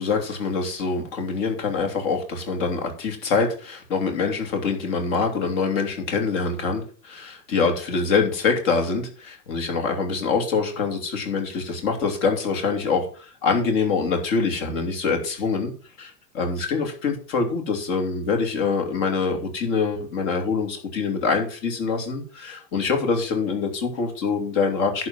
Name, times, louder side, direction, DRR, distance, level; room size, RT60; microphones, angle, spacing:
voice 1, 0.0-15.7 16.0-25.1, left 4 dB, 50° left, 4 dB, 3.1 m, -25 dB
11.0 x 4.4 x 7.4 m, 0.40 s
figure-of-eight pair, 95°, 50 cm